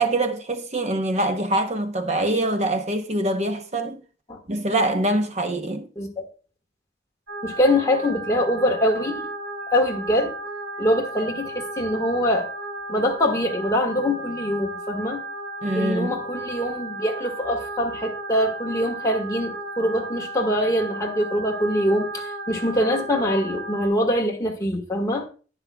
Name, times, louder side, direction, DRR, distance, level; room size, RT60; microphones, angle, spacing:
voice 1, 0.0-4.0 4.5-5.9 15.6-16.2, right 1 dB, 35° right, 0.8 m, -24 dB
sound 1, 7.3-23.9, right 2 dB, 85° right, 4.8 m, -34 dB
voice 2, 7.4-9.3 9.7-10.3 10.8-12.5 12.9-15.2 15.7-25.3, equal, 15° left, 1.4 m, -23 dB
10.5 x 9.8 x 2.3 m
head